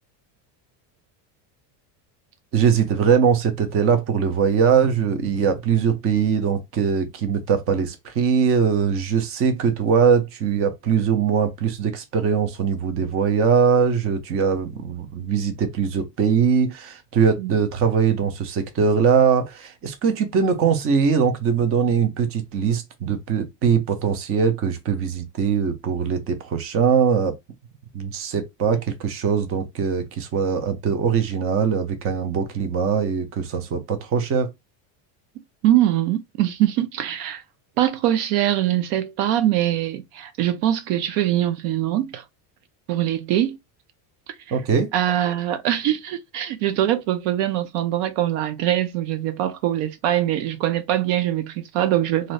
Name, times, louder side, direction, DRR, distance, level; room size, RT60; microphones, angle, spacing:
voice 1, 2.5-27.4 27.9-34.5 44.5-44.9, right 6 dB, 30° right, 0.6 m, -21 dB
voice 2, 35.6-37.4 37.8-42.2 42.9-43.6 44.9-52.3, right 12 dB, 75° right, 0.7 m, -22 dB
2.6 x 2.6 x 3.2 m
cardioid pair, 155°, 48 cm